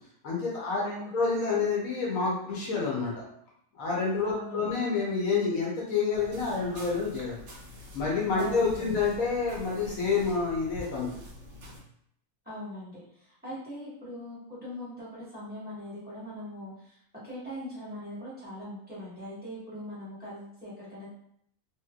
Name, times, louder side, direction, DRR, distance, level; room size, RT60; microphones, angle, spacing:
voice 1, 0.2-3.1 3.8-7.4 7.9-11.1, left 4 dB, 70° left, -4 dB, 1.2 m, -28 dB
voice 2, 0.8-1.1 4.2-4.7 8.4-8.9 12.4-21.1, equal, 5° right, -10 dB, 1.2 m, -41 dB
sound 1, 6.1-11.8, left 1 dB, 60° right, 1.0 m, -46 dB
3.1 x 2.8 x 2.3 m, 0.71 s
omnidirectional pair, 1.6 m